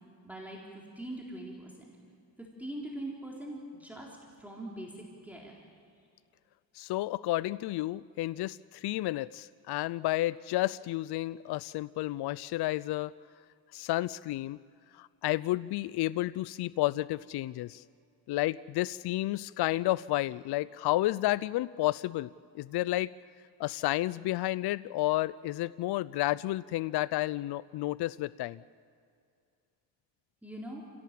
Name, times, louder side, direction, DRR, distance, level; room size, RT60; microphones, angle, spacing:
voice 1, 0.2-1.9 2.4-5.6 6.0-6.1 30.4-30.8, right 1 dB, 5° right, -3 dB, 4.0 m, -42 dB
voice 2, 6.7-13.1 13.7-14.6 14.9-17.8 18.3-23.1 23.6-28.6, left 17 dB, 65° left, 19 dB, 0.5 m, -31 dB
29.0 x 17.0 x 7.6 m, 2.4 s
cardioid pair, 85°, 41 cm